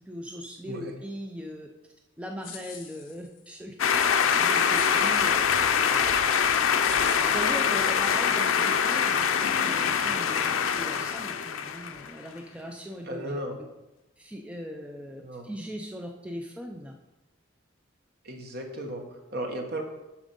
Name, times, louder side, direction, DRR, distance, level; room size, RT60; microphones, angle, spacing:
voice 1, 0.0-1.7 2.2-3.7 4.4-5.7 7.0-13.3 13.5-13.7 14.2-16.9, equal, 5° right, 1 dB, 0.5 m, -39 dB
sound 1, 2.4-3.5 4.7-5.7 6.3-6.4 6.8-8.2, left 8 dB, 70° left, 0.9 m, -46 dB
sound 2, 3.8-12.1, left 7 dB, 90° left, 0.5 m, -24 dB
voice 2, 13.1-13.6 15.2-15.5 18.2-19.0 19.3-19.8, right 1 dB, 50° right, 2 dB, 1.3 m, -35 dB
7.4 x 6.1 x 5.3 m, 1.0 s
head